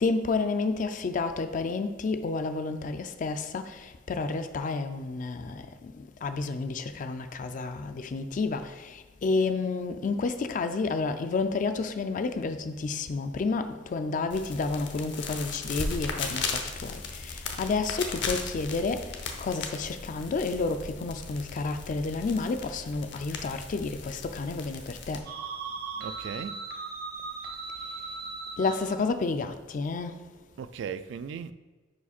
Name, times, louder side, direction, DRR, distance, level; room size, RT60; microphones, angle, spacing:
voice 1, 0.0-5.9 6.2-19.1 19.4-25.2 28.6-30.1, left 3 dB, 40° left, 0.3 m, -30 dB
sound 1, 14.3-25.2, left 4 dB, 65° left, 0.7 m, -37 dB
sound 2, 25.3-29.0, right 4 dB, 55° right, 0.8 m, -38 dB
voice 2, 26.0-26.6 30.6-31.5, right 7 dB, 70° right, 0.3 m, -37 dB
5.0 x 4.8 x 4.2 m
head